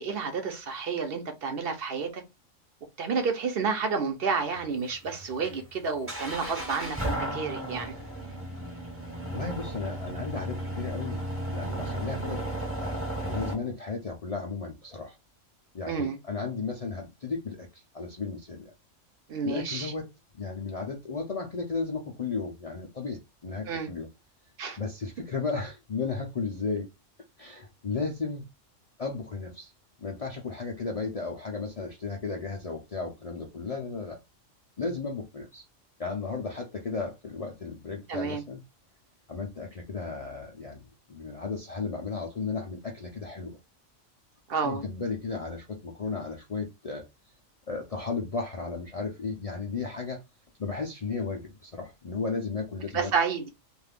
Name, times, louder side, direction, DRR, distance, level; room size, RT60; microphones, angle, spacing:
voice 1, 0.0-2.2 3.0-8.0 15.9-16.2 19.3-19.9 23.7-23.9 24.6-24.8 38.1-38.4 44.5-44.8 52.9-53.5, right 5 dB, 55° right, 0.8 m, -30 dB
sound 1, 4.4-13.5, right 1 dB, 15° right, 0.7 m, -34 dB
voice 2, 9.3-11.2 11.5-12.4 12.8-15.2 15.7-18.7 19.4-20.1 20.4-24.1 24.8-26.9 27.4-28.5 29.0-29.7 30.0-34.2 34.8-35.6 36.0-38.6 39.3-40.8 41.1-43.6 44.6-47.0 47.7-50.2 50.6-53.1, left 4 dB, 50° left, 0.4 m, -34 dB
2.6 x 2.4 x 3.4 m
omnidirectional pair, 1.3 m